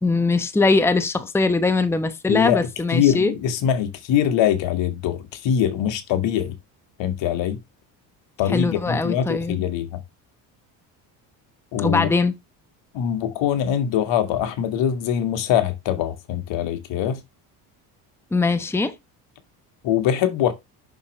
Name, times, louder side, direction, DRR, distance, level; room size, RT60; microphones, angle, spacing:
voice 1, 0.0-3.3 8.5-9.6 11.8-12.3 18.3-19.0, left 3 dB, 5° left, 0.9 m, -21 dB
voice 2, 2.3-2.6 2.9-6.6 7.0-7.6 8.4-10.0 11.7-12.1 12.9-17.2 19.8-20.5, left 9 dB, 65° left, 1.9 m, -23 dB
7.0 x 6.4 x 3.2 m
supercardioid pair, 105°, 47 cm